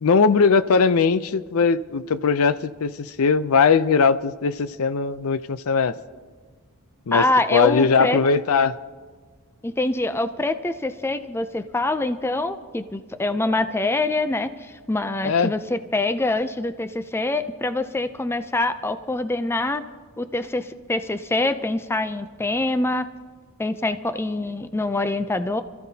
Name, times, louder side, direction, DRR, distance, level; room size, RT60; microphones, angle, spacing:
voice 1, 0.0-6.0 7.1-7.3 7.5-8.8 15.2-15.5, left 5 dB, 70° left, 14 dB, 0.5 m, -20 dB
voice 2, 7.1-8.2 9.6-19.8 20.2-23.1 23.6-25.6, left 2 dB, 10° left, 10 dB, 0.4 m, -25 dB
28.0 x 14.0 x 2.8 m, 1.4 s
head